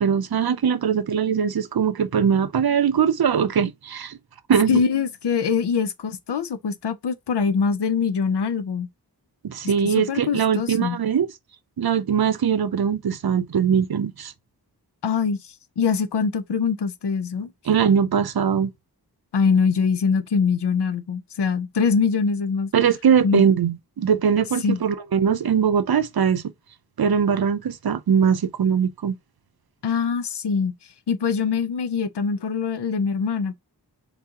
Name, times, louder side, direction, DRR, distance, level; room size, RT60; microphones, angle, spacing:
voice 1, 0.0-4.2 4.5-4.8 9.4-11.3 11.8-14.3 17.7-18.7 22.7-26.4 27.0-29.1, right 7 dB, 65° right, 0.5 m, -21 dB
voice 2, 4.7-8.9 9.8-11.0 15.0-17.5 19.3-22.7 23.2-23.4 24.6-24.8 29.8-30.7 31.1-33.5, left 5 dB, 90° left, 0.6 m, -23 dB
4.0 x 2.8 x 3.6 m
wide cardioid pair, 55°, 39 cm